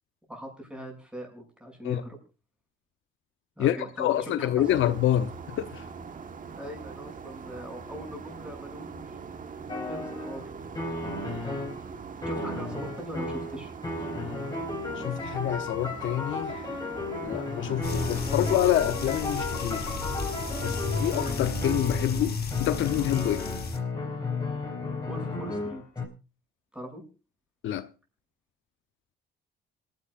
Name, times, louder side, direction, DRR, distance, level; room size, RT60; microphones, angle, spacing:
voice 1, 0.3-2.2 3.6-4.5 6.6-9.2 9.8-10.4 12.3-13.7 17.2-17.4 25.1-25.8 26.7-27.0, equal, 5° right, 6.7 m, -41 dB
voice 2, 3.6-5.8 15.0-16.7 17.2-19.9 20.6-23.4 27.6-27.9, left 12 dB, 75° left, 0.8 m, -27 dB
sound 1, 4.6-21.3, right 5 dB, 40° right, 1.4 m, -42 dB
sound 2, 9.7-10.4 10.7-11.8 12.2-26.0, left 3 dB, 20° left, 5.6 m, -34 dB
sound 3, 17.8-23.8, left 4 dB, 50° left, 4.8 m, -32 dB
27.0 x 11.0 x 2.5 m
cardioid pair, 90°, 20 cm